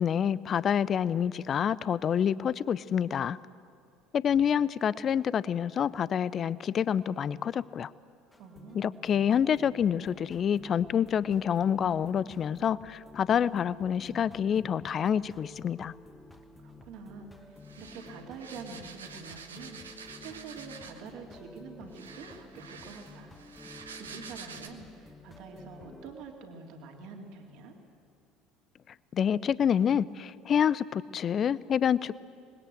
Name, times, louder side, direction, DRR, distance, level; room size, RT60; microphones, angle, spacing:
voice 1, 0.0-3.4 4.1-7.9 8.7-15.9 29.1-32.3, left 8 dB, 40° left, 19 dB, 0.6 m, -27 dB
sound 1, 8.3-26.1, left 2 dB, 15° left, 1.8 m, -52 dB
voice 2, 8.4-9.0 16.6-23.4 24.0-27.7, right 4 dB, 60° right, 2 dB, 3.3 m, -46 dB
sound 2, 17.6-21.1 21.9-24.7, right 6 dB, 85° right, 1.4 m, -47 dB
26.5 x 20.5 x 7.9 m, 2.4 s
figure-of-eight pair, 65°, 0 cm